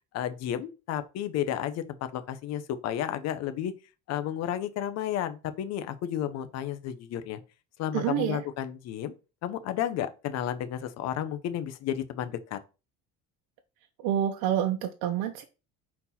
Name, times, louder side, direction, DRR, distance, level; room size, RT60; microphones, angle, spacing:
voice 1, 0.1-1.8 2.1-3.7 4.1-7.4 7.8-9.1 9.4-12.6, left 10 dB, 55° left, 0.8 m, -32 dB
voice 2, 7.9-8.4 14.0-15.4, right 10 dB, 85° right, 0.9 m, -28 dB
5.6 x 4.3 x 4.2 m
cardioid pair, 160°, 32 cm